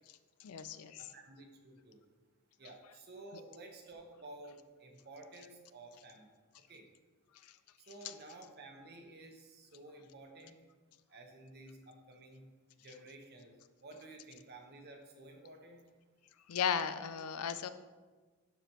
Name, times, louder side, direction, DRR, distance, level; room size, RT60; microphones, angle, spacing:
voice 1, 0.4-1.0 7.4-7.5 16.5-17.7, left 7 dB, 85° left, 12 dB, 0.4 m, -35 dB
voice 2, 1.0-2.0 2.6-6.3 6.7-6.9 7.9-10.6 11.1-12.5 12.8-15.8, right 2 dB, 45° right, 3 dB, 1.1 m, -53 dB
11.5 x 5.0 x 3.0 m, 1.3 s
head